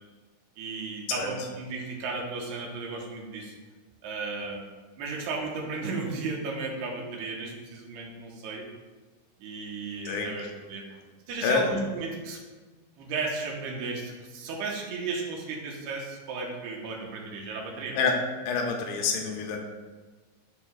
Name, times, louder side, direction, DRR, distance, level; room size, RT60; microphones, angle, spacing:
voice 1, 0.6-3.5 4.0-4.7 5.0-8.7 9.4-10.8 11.3-12.4 13.0-18.0, right 3 dB, 90° right, -1 dB, 3.1 m, -34 dB
voice 2, 18.5-19.6, left 5 dB, 90° left, 2 dB, 2.9 m, -27 dB
12.5 x 4.6 x 2.3 m, 1.3 s
omnidirectional pair, 4.6 m